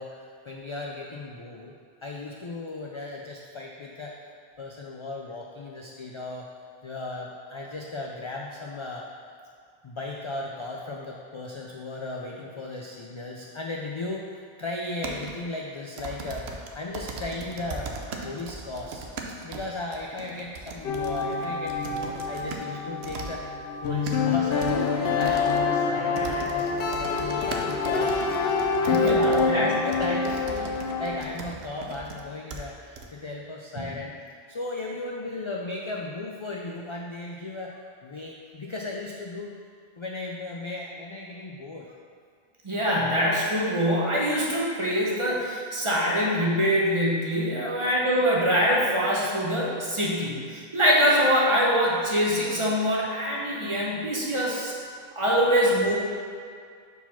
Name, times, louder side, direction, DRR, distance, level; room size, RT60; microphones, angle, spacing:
voice 1, 0.0-1.7 2.0-4.2 4.6-6.5 6.8-9.1 9.8-14.3 14.6-16.5 16.7-17.9 18.2-19.0 19.4-23.4 23.8-28.2 28.8-34.1 34.5-37.7 38.0-39.5 40.0-41.9 47.6-47.7, left 2 dB, 50° left, -2 dB, 0.3 m, -36 dB
sound 1, 15.0-15.3 16.0-22.7 23.0-23.3 23.8-24.2 24.6-24.7 25.2-25.6 26.2-32.2 32.5-32.6 33.0-33.1, right 4 dB, 85° right, 0.9 m, -39 dB
sound 2, 20.8-31.2, left 4 dB, 70° left, 0.8 m, -26 dB
voice 2, 28.9-29.7 33.8-33.9 42.6-54.7 55.1-56.0, equal, 30° right, -5 dB, 1.0 m, -24 dB
4.7 x 4.1 x 5.7 m, 2.2 s
omnidirectional pair, 1.0 m